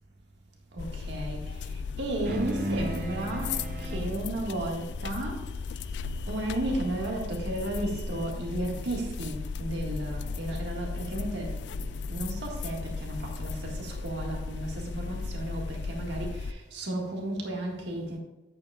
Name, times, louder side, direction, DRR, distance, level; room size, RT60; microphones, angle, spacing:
voice 1, 0.7-5.4 6.3-18.2, right 1 dB, 70° right, -1 dB, 1.7 m, -34 dB
sound 1, 0.8-16.5, left 4 dB, 70° left, 0.3 m, -36 dB
sound 2, 2.2-7.0, right 1 dB, 50° right, 0.9 m, -37 dB
9.4 x 8.4 x 2.3 m, 1.0 s
head